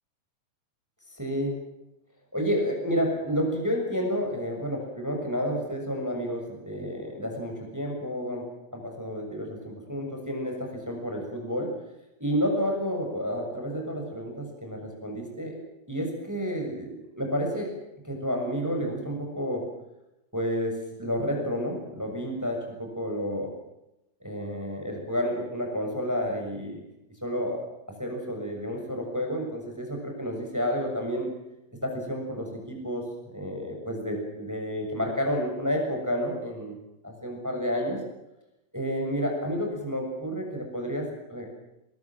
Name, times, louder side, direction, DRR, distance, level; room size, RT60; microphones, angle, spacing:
voice 1, 1.1-1.6 2.3-8.5 8.7-11.8 12.2-15.6 15.9-17.7 18.0-19.6 20.3-23.5 24.2-26.8 27.2-27.6 28.0-31.3 31.8-36.8 37.0-38.0 38.7-41.5, equal, 5° right, 1 dB, 6.4 m, -30 dB
23.5 x 22.0 x 7.6 m, 0.88 s
omnidirectional pair, 4.7 m